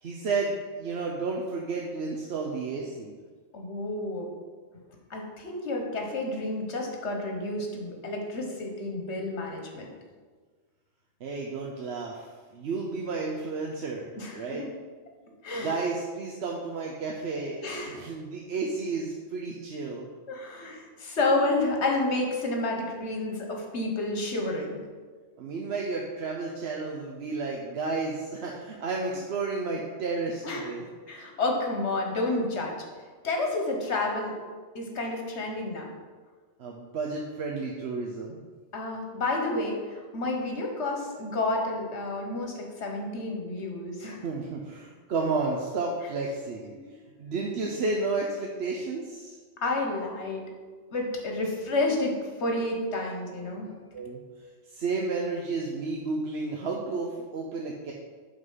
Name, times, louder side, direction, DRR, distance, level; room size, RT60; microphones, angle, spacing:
voice 1, 0.0-3.2 11.2-12.2 12.5-14.6 15.6-17.6 17.8-20.1 25.4-30.9 36.6-38.4 44.2-46.7 47.2-49.4 53.5-54.2 54.7-57.9, right 3 dB, 65° right, -1 dB, 1.0 m, -32 dB
voice 2, 3.5-4.3 5.1-9.9 14.2-14.7 15.4-15.8 17.6-18.0 20.3-24.8 30.4-30.7 31.1-32.7 33.2-34.3 34.7-35.9 38.7-44.2 46.7-47.0 49.6-50.4 50.9-53.7, left 2 dB, 70° left, 1 dB, 1.5 m, -30 dB
7.9 x 3.9 x 5.6 m, 1.5 s
omnidirectional pair, 1.2 m